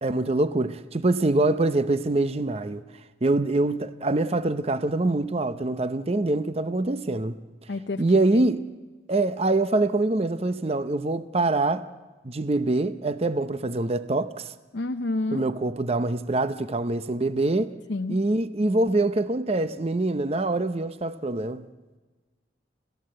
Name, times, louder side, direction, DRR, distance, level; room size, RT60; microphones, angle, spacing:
voice 1, 0.0-2.8 3.2-7.4 8.0-8.7 9.1-11.9 12.2-14.5 15.3-17.7 18.1-21.6, right 2 dB, 30° right, 0.6 m, -24 dB
voice 2, 7.7-8.0 14.7-15.4 17.9-18.2, left 2 dB, 65° left, 0.7 m, -28 dB
29.5 x 14.0 x 7.7 m
head